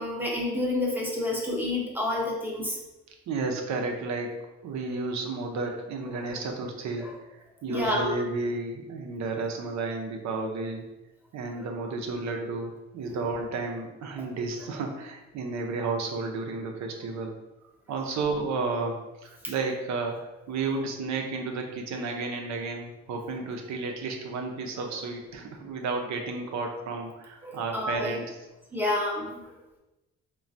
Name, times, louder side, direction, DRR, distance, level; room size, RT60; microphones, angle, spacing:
voice 1, 0.0-2.8 6.1-6.3 7.0-7.1 7.7-8.1 13.0-13.2 27.4-28.2 28.7-29.3, left 1 dB, 5° right, -3 dB, 0.6 m, -29 dB
voice 2, 3.3-10.9 11.3-17.3 17.9-19.0 19.2-28.4 28.8-29.0 29.3-29.4, right 3 dB, 65° right, 2 dB, 0.6 m, -32 dB
3.2 x 2.2 x 2.5 m, 1.0 s
cardioid pair, 90°, 30 cm